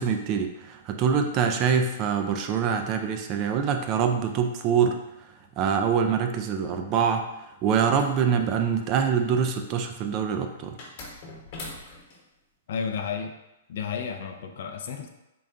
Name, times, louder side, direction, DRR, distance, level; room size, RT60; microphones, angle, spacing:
voice 1, 0.0-5.0 5.6-7.2 7.6-10.8, right 7 dB, 30° right, 5 dB, 0.3 m, -24 dB
sound 1, 7.8-9.2 10.8-12.2, left 2 dB, 45° left, 1.1 m, -42 dB
voice 2, 12.7-13.4 13.7-15.1, left 6 dB, 60° left, 6 dB, 0.4 m, -32 dB
3.8 x 2.2 x 3.6 m, 0.94 s
hypercardioid pair, 155°, 0 cm